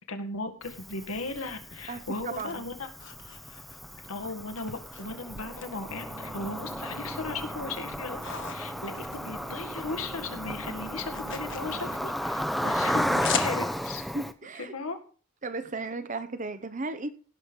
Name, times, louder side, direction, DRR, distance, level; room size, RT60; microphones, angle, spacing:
voice 1, 0.1-2.9 4.1-8.2 8.5-14.0 14.6-15.0, left 3 dB, 85° left, 2.0 m, -37 dB
Cricket, 0.6-14.3, equal, ahead, 0.7 m, -34 dB
sound 1, 1.3-4.1 4.6-5.7 6.0-7.0 7.4-10.0 10.2-14.0, left 8 dB, 60° left, 1.4 m, -40 dB
voice 2, 1.9-2.7 14.1-14.7 15.4-17.1, right 3 dB, 35° right, 0.8 m, -35 dB
sound 2, 5.9-12.0, right 1 dB, 55° right, 1.4 m, -45 dB
17.0 x 6.4 x 5.3 m
head